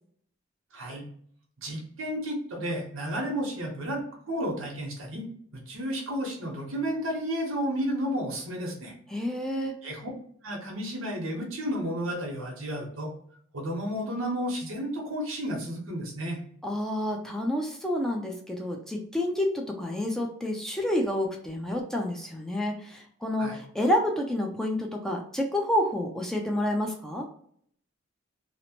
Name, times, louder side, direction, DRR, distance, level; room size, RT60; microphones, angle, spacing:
voice 1, 0.7-1.1 1.6-5.2 5.5-8.9 9.8-10.0 10.4-13.1 13.5-16.4 23.4-23.6, equal, 85° right, -1 dB, 0.9 m, -32 dB
voice 2, 9.1-9.7 16.6-27.3, left 1 dB, ahead, 0 dB, 0.4 m, -29 dB
2.8 x 2.1 x 2.8 m, 0.63 s
head